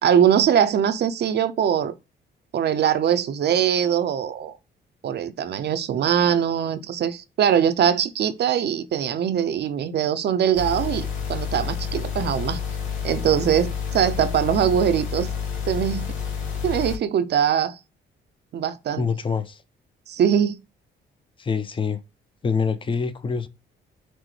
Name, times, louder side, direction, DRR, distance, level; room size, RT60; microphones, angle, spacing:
voice 1, 0.0-1.9 2.5-4.5 5.0-12.6 13.0-15.3 15.7-16.1 16.6-17.8 18.5-19.1 20.1-20.6, right 9 dB, 55° right, 0.6 m, -22 dB
sound 1, 10.5-17.0, left 7 dB, 80° left, 1.4 m, -29 dB
voice 2, 19.0-19.6 21.4-22.0 22.4-23.5, left 5 dB, 25° left, 0.6 m, -25 dB
6.0 x 2.1 x 3.2 m
cardioid pair, 90°, 20 cm